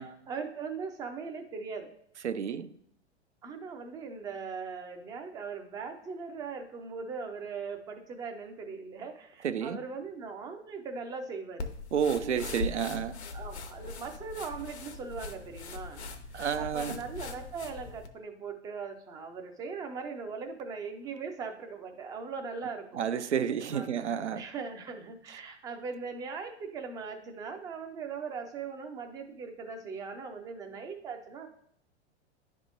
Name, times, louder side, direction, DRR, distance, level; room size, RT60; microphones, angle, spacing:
voice 1, 0.0-1.9 3.4-11.7 13.3-16.0 16.5-23.0 23.7-23.9 24.3-31.5, right 5 dB, 10° right, 0.4 m, -40 dB
voice 2, 2.2-2.7 9.4-9.8 11.9-13.2 16.3-16.9 23.0-24.4, right 8 dB, 75° right, 0.5 m, -30 dB
sound 1, 11.6-18.1, left 3 dB, 70° left, 0.8 m, -40 dB
10.5 x 3.6 x 2.5 m
figure-of-eight pair, 100°, 35 cm